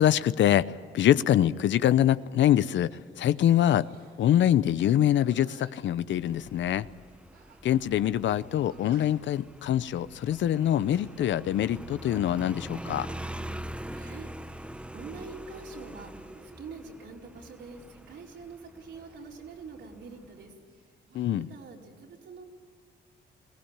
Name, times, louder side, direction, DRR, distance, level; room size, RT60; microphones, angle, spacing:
voice 1, 0.0-3.9 4.2-6.9 7.6-13.1 21.1-21.5, left 11 dB, 70° left, 15 dB, 0.8 m, -24 dB
sound 1, 2.1-2.3 2.6-3.0 3.3-4.2 5.0-6.6 7.3-7.8 8.1-8.2 8.7-9.3 9.8-10.1 10.6-11.1 11.6-11.8 12.5-13.1 13.8-14.2 14.7-15.7 16.2-17.1 18.9-20.4 20.6-21.3, right 4 dB, 85° right, 5.5 m, -58 dB
Motorcycle, 6.2-20.5, right 1 dB, 5° right, 0.9 m, -43 dB
voice 2, 13.9-20.5 21.5-22.4, right 4 dB, 70° right, -1 dB, 4.6 m, -45 dB
22.0 x 17.5 x 8.9 m, 2.1 s
cardioid pair, 90°, 20 cm